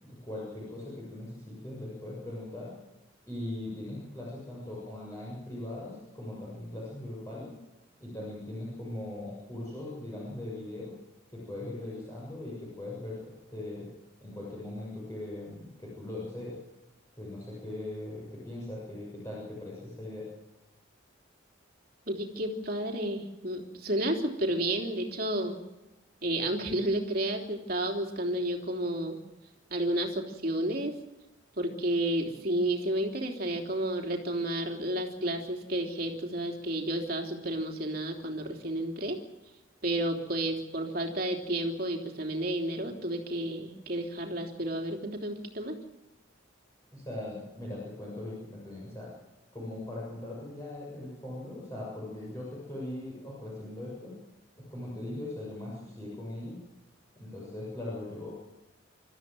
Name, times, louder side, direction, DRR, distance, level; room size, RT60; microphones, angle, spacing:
voice 1, 0.0-2.7 3.3-7.5 8.0-10.9 11.3-13.9 14.2-16.6 17.2-20.3 46.9-49.1 49.5-54.1 54.7-56.6 57.2-58.3, left 1 dB, 15° left, -6 dB, 7.2 m, -40 dB
voice 2, 22.1-25.6 26.2-29.1 29.7-30.9 31.5-39.2 39.8-45.8, right 1 dB, 45° right, 2 dB, 3.3 m, -31 dB
27.0 x 14.0 x 7.7 m, 1.0 s
head